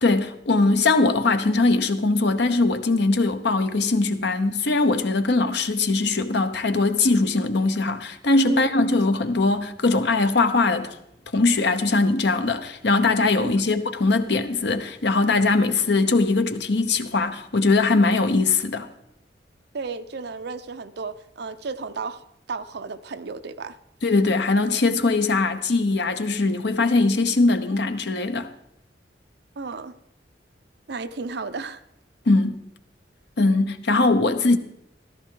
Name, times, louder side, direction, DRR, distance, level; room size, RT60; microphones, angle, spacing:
voice 1, 0.0-10.9 11.3-18.9 24.0-28.5 32.3-32.6 33.4-34.6, left 3 dB, 65° left, 0.9 m, -21 dB
voice 2, 19.7-22.2 22.5-23.8 29.6-29.9 30.9-31.8, right 4 dB, 65° right, 0.6 m, -33 dB
15.0 x 13.0 x 3.8 m
head